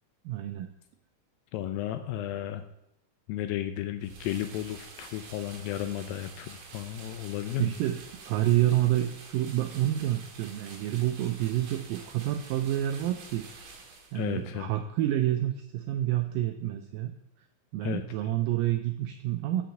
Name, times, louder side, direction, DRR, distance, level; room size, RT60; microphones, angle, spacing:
voice 1, 0.3-0.7 7.6-8.0 8.3-13.5 14.1-17.1 17.7-19.6, right 13 dB, 85° right, 7 dB, 1.9 m, -28 dB
voice 2, 1.5-2.6 3.3-7.7 14.2-14.7 17.8-18.3, left 12 dB, 80° left, 8 dB, 2.1 m, -34 dB
sound 1, 4.0-14.4, right 4 dB, 60° right, 2.7 m, -48 dB
6.2 x 5.9 x 7.1 m, 0.81 s
omnidirectional pair, 4.5 m